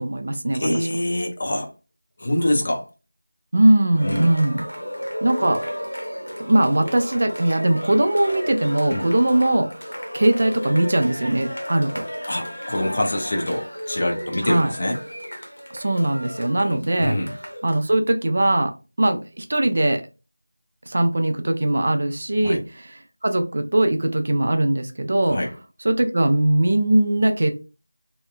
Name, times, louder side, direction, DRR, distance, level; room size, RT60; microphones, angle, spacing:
voice 1, 0.0-0.7 3.5-4.7 5.2-5.6 6.4-12.0 14.4-14.7 15.7-17.2 17.6-18.7 19.0-20.0 20.9-25.4 25.8-27.5, right 1 dB, 45° right, 7 dB, 0.4 m, -20 dB
voice 2, 0.5-1.7 2.2-2.8 4.0-4.3 8.9-9.1 12.3-15.0 16.7-17.3 22.4-22.6 25.3-25.5, left 1 dB, 35° left, 2 dB, 0.6 m, -25 dB
Cheering, 3.9-17.8, equal, 85° left, 0.8 m, -33 dB
2.8 x 2.1 x 2.3 m, 0.30 s
figure-of-eight pair, 170°, 0 cm